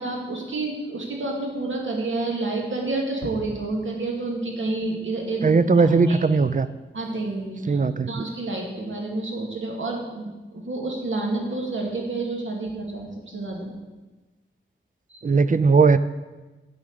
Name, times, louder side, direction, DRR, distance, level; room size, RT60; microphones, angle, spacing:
voice 1, 0.0-6.2 6.9-7.8 8.1-13.7 15.1-15.2, right 2 dB, 70° right, -1 dB, 2.3 m, -29 dB
voice 2, 5.4-6.7 7.7-8.2 15.2-16.0, right 4 dB, 40° right, 13 dB, 0.5 m, -18 dB
11.0 x 5.1 x 8.4 m, 1.2 s
wide cardioid pair, 95°, 21 cm